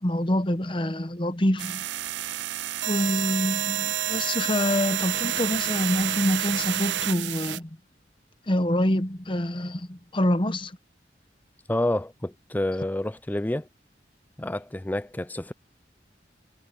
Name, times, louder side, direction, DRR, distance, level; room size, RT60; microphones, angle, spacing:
voice 1, 0.0-1.8 2.9-7.7 8.5-10.8, left 1 dB, 30° left, 1.0 m, -26 dB
sound 1, 1.6-7.6, right 12 dB, 85° right, 0.5 m, -29 dB
voice 2, 11.7-13.7 14.4-15.5, left 1 dB, 10° left, 0.4 m, -28 dB
head